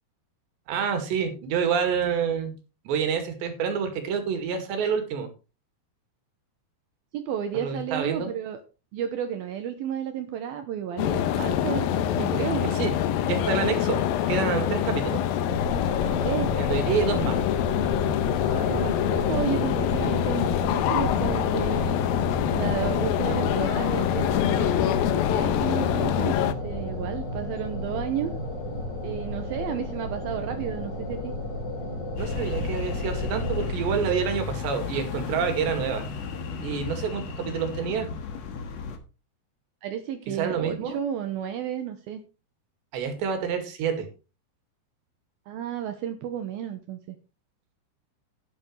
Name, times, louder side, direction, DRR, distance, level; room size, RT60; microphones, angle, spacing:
voice 1, 0.7-2.5 2.9-5.3 7.6-8.3 12.6-12.9 13.2-14.0 14.3-15.2 16.6-17.4 32.2-36.0 36.6-38.1 40.3-41.0 42.9-44.1, right 6 dB, 90° right, 6 dB, 4.5 m, -27 dB
voice 2, 7.1-8.6 8.9-12.7 16.2-16.5 18.5-22.0 22.5-28.3 29.0-31.3 39.8-42.2 45.5-47.2, right 9 dB, 70° right, 7 dB, 2.6 m, -32 dB
sound 1, 11.0-26.5, left 10 dB, 75° left, 2.3 m, -25 dB
sound 2, 15.5-33.7, left 2 dB, 30° left, 2.6 m, -33 dB
sound 3, 32.2-39.0, left 4 dB, 55° left, 2.1 m, -33 dB
12.5 x 11.0 x 3.3 m, 0.31 s
omnidirectional pair, 4.9 m